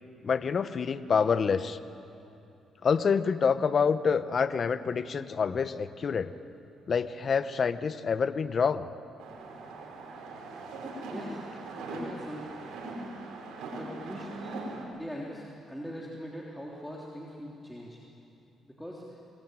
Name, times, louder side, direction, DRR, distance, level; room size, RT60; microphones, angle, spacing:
voice 1, 0.2-1.8 2.8-6.3 6.9-8.9, left 6 dB, 45° left, 13 dB, 1.0 m, -27 dB
sound 1, 9.2-14.8, right 2 dB, 85° right, 5.1 m, -40 dB
voice 2, 11.1-11.4 11.8-12.5 13.7-14.6 14.9-18.0 18.8-19.2, equal, 5° left, -4 dB, 3.3 m, -41 dB
26.0 x 21.5 x 9.3 m, 2.8 s
cardioid pair, 90°, 0 cm